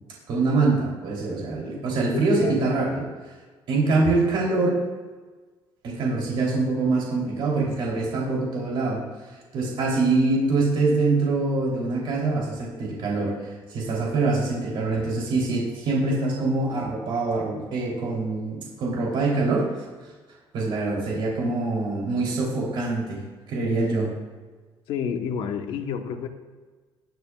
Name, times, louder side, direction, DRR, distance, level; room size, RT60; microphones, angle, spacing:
voice 1, 0.3-3.1 3.7-4.8 5.8-19.8 20.5-23.2 23.5-24.1, right 3 dB, 55° right, -3 dB, 3.2 m, -24 dB
voice 2, 2.1-2.7 24.9-26.3, left 7 dB, 70° left, 5 dB, 1.1 m, -30 dB
20.0 x 9.4 x 2.4 m, 1.4 s
cardioid pair, 170°, 10 cm